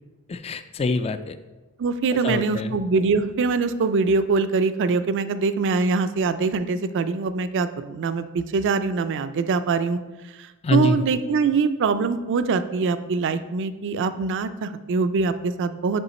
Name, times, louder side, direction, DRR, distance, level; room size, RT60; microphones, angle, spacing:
voice 1, 0.3-1.4 2.1-2.8 10.6-11.0, left 3 dB, 25° left, 11 dB, 0.3 m, -25 dB
voice 2, 1.8-10.0 10.4-16.0, right 4 dB, 55° right, 12 dB, 0.4 m, -23 dB
6.8 x 4.8 x 4.2 m, 1.2 s
head